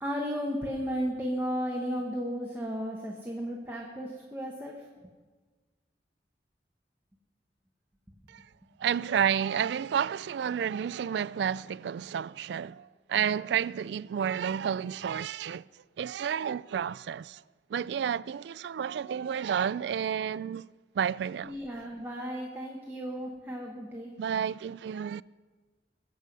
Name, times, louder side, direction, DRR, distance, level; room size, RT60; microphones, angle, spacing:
voice 1, 0.0-4.8 21.4-24.1, equal, 10° right, 1.2 m, -34 dB
voice 2, 8.8-15.6 16.0-17.4 17.7-20.7 21.0-21.5 24.2-25.2, right 8 dB, 70° right, 0.3 m, -30 dB
21.5 x 7.6 x 5.4 m
head